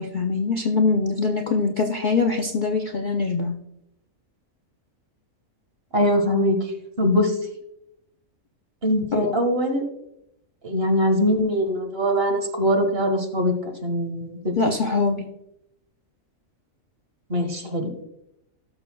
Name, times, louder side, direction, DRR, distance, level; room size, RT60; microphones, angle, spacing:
voice 1, 0.0-3.6 9.1-9.3 14.6-15.3, left 4 dB, 45° left, 3 dB, 0.6 m, -23 dB
voice 2, 5.9-7.4 8.8-9.8 10.6-14.5 17.3-17.9, equal, 45° right, 4 dB, 1.8 m, -22 dB
17.5 x 6.7 x 2.3 m, 0.81 s
omnidirectional pair, 1.5 m